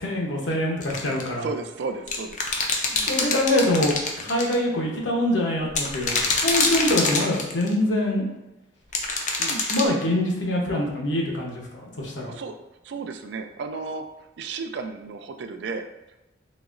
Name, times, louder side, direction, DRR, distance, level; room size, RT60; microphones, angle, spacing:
voice 1, 0.0-1.5 2.9-8.2 9.7-12.4, left 1 dB, 75° left, -1 dB, 0.8 m, -24 dB
sound 1, 0.8-1.3 2.1-4.5 5.7-7.7 8.9-9.9, left 3 dB, 40° left, 0.4 m, -25 dB
voice 2, 1.4-2.4 9.4-9.7 12.3-12.6 12.8-14.0 14.4-15.9, right 4 dB, 65° right, 6 dB, 0.3 m, -33 dB
4.0 x 2.9 x 2.4 m, 0.96 s
head